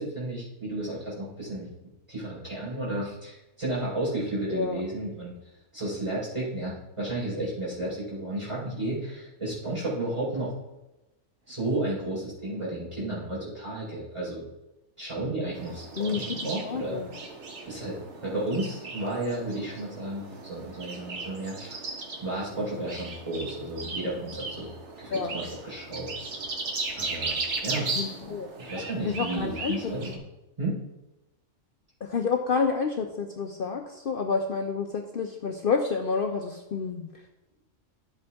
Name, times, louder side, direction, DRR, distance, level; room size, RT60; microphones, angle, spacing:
voice 1, 0.0-1.7 2.1-5.3 5.7-10.5 11.5-14.4 15.0-17.0 17.7-21.8 22.2-24.7 25.0-26.1 26.9-27.9 28.6-30.2 30.6-30.8, right 1 dB, 25° right, -7 dB, 4.2 m, -32 dB
sound 1, 15.5-30.2, right 3 dB, 65° right, 1.5 m, -37 dB
voice 2, 16.0-16.4 16.6-17.1 25.1-25.3 27.9-28.5 29.0-29.9 32.0-37.1, left 5 dB, 55° left, 3 dB, 0.8 m, -29 dB
11.5 x 7.9 x 3.5 m, 0.96 s
omnidirectional pair, 1.3 m